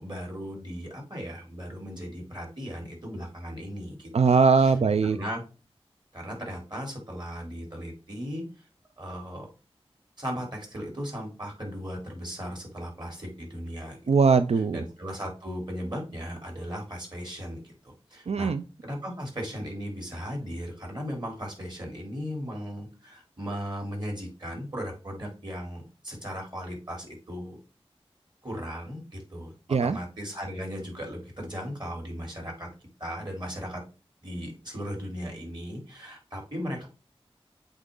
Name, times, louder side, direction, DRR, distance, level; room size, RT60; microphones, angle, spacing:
voice 1, 0.0-4.7 5.1-5.4 6.1-8.7 9.0-9.5 10.2-14.1 14.7-18.5 18.8-27.6 28.4-29.5 29.8-32.7 33.0-33.8 34.2-36.9, equal, 45° right, 0 dB, 3.3 m, -37 dB
voice 2, 4.1-5.2 14.1-14.8 18.3-18.6 29.7-30.0, right 5 dB, 90° right, 11 dB, 0.4 m, -21 dB
8.1 x 4.0 x 3.8 m, 0.33 s
wide cardioid pair, 50°, 10 cm